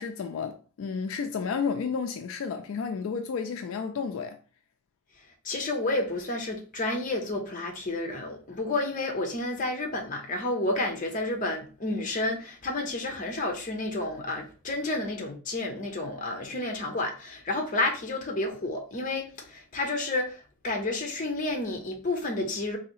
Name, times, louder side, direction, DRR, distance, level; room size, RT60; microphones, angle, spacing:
voice 1, 0.0-4.4, left 5 dB, 75° left, 0.4 m, -32 dB
voice 2, 5.4-22.8, left 2 dB, 40° left, 0.7 m, -30 dB
3.9 x 2.7 x 3.0 m
head